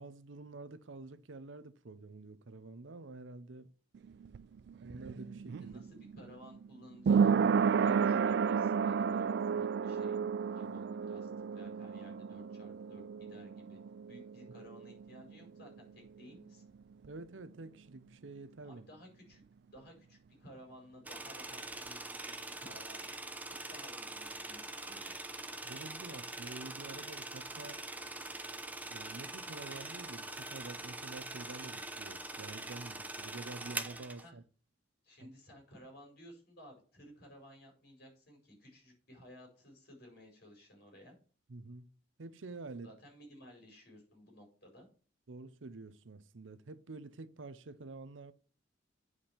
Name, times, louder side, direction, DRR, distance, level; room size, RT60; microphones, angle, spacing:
voice 1, 0.0-3.7 4.8-5.8 17.0-18.8 25.6-27.8 28.9-34.4 35.2-35.3 41.5-41.9 42.2-42.9 45.3-48.3, right 3 dB, 75° right, 0.7 m, -48 dB
sound 1, 3.9-15.5 15.8-15.9, right 6 dB, 60° right, 0.3 m, -32 dB
voice 2, 5.6-7.4 7.7-13.8 14.0-16.6 18.6-19.4 19.7-23.0 23.4-25.1 34.2-34.4 35.0-41.2 42.8-44.9, equal, 55° left, 4.7 m, -56 dB
sound 2, 21.0-34.2, right 2 dB, 10° right, 0.7 m, -43 dB
8.9 x 4.9 x 5.7 m
head